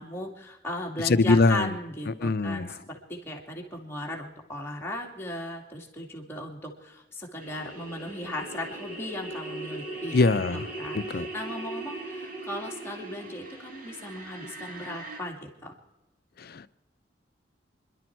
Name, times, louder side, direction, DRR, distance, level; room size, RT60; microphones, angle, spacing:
voice 1, 0.0-10.2 10.5-15.7, left 1 dB, 15° left, 2.3 m, -37 dB
voice 2, 1.0-1.7 2.1-2.7 10.1-11.3 16.4-16.7, left 3 dB, 55° left, 0.5 m, -23 dB
sound 1, 7.4-15.2, right 2 dB, 45° right, 2.3 m, -39 dB
27.0 x 11.5 x 4.6 m
head